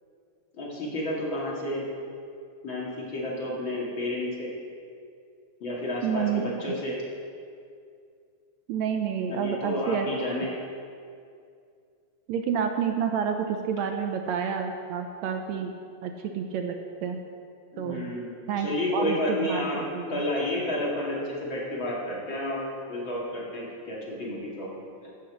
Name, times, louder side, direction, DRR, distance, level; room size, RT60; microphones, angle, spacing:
voice 1, 0.5-1.9 2.6-4.5 5.6-7.0 9.3-10.5 17.7-19.8 20.1-24.7, left 1 dB, 45° left, -5 dB, 2.8 m, -31 dB
voice 2, 6.0-6.4 8.7-10.1 12.3-15.7 16.0-17.2 17.8-18.1 18.5-20.2, right 7 dB, 75° right, 5 dB, 1.9 m, -29 dB
15.0 x 6.7 x 6.5 m, 2.3 s
omnidirectional pair, 3.4 m